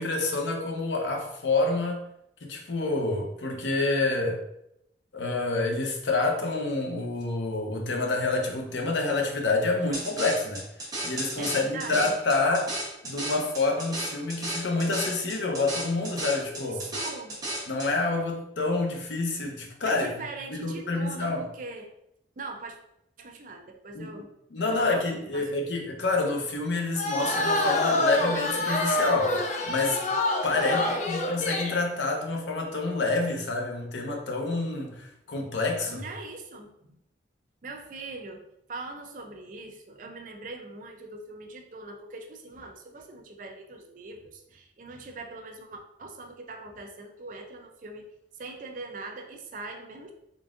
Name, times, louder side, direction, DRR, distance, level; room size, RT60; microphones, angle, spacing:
voice 1, 0.0-2.1 2.4-4.4 5.1-10.6 11.0-12.7 13.0-16.8 17.7-20.1 20.5-21.4 23.9-24.1 24.5-30.0 30.4-36.0, left 3 dB, 90° left, 1 dB, 0.7 m, -28 dB
sound 1, 9.9-17.9, right 1 dB, 20° right, 0.8 m, -34 dB
voice 2, 11.4-12.2 16.4-17.4 19.9-21.9 22.4-22.8 23.2-24.3 24.7-25.5 30.5-31.0 35.9-37.0 37.6-38.4 38.7-48.1 48.4-50.1, right 3 dB, 45° right, 4 dB, 0.5 m, -41 dB
sound 2, 27.0-31.8, left 2 dB, 40° left, 0.5 m, -27 dB
3.8 x 3.6 x 2.4 m, 0.79 s
head